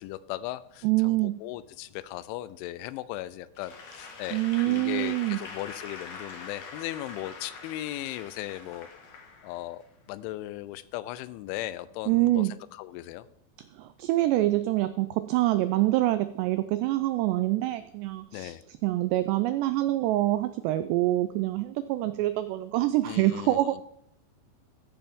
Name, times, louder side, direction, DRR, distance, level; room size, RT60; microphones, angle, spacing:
voice 1, 0.0-8.9 9.4-9.8 10.1-13.3 18.3-18.6 23.0-23.8, left 15 dB, 85° left, 16 dB, 2.9 m, -37 dB
voice 2, 0.8-1.4 4.3-5.4 12.1-12.5 13.8-18.5 18.8-23.8, right 16 dB, 90° right, 13 dB, 2.4 m, -25 dB
Applause / Crowd, 3.6-9.9, left 4 dB, 55° left, 2.3 m, -44 dB
14.5 x 10.5 x 3.6 m, 0.74 s
omnidirectional pair, 5.4 m